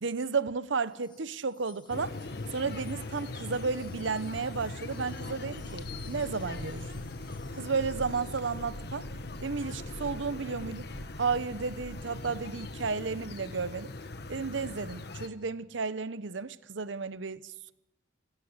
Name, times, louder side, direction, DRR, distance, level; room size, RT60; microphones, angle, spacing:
voice 1, 0.0-2.2 2.5-7.0 7.5-9.1 9.4-10.9 11.2-13.9 14.3-17.7, right 5 dB, 75° right, 0.8 m, -33 dB
Wind chime, 0.8-9.0, left 6 dB, 25° left, 1.9 m, -61 dB
sound 1, 1.9-15.3, left 2 dB, 55° left, 1.2 m, -40 dB
sound 2, 5.2-12.8, equal, 90° left, 3.3 m, -47 dB
27.0 x 16.0 x 8.0 m
head